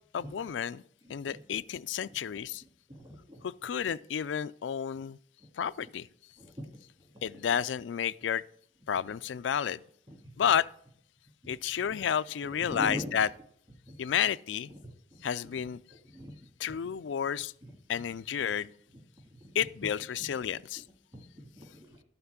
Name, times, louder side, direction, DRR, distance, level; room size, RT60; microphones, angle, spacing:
voice 1, 0.1-0.8 1.1-2.6 3.4-5.2 5.6-6.1 7.2-8.4 8.9-9.8 10.4-10.7 11.5-13.3 14.0-14.7 15.2-15.8 16.6-17.5 17.9-18.7 19.5-20.8, left 8 dB, 90° left, 0.4 m, -31 dB
voice 2, 2.9-3.4 5.6-5.7 6.4-6.6 11.4-11.5 12.6-13.1 13.9-14.0 15.1-15.2 16.1-16.3 17.6-17.7 19.4-19.5 21.1-21.9, equal, 25° right, 2.2 m, -41 dB
12.0 x 5.8 x 8.0 m
head